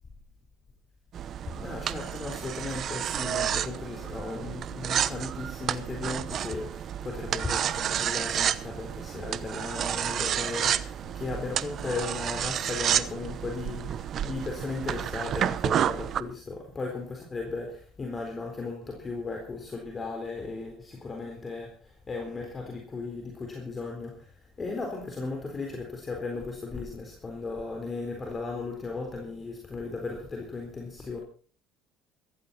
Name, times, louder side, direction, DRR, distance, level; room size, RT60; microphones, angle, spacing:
sound 1, 1.1-16.2, right 9 dB, 50° right, 0.9 m, -30 dB
voice 1, 1.5-31.2, left 3 dB, 25° left, 2 dB, 4.1 m, -36 dB
16.0 x 14.5 x 4.3 m, 0.40 s
supercardioid pair, 85°, 0 cm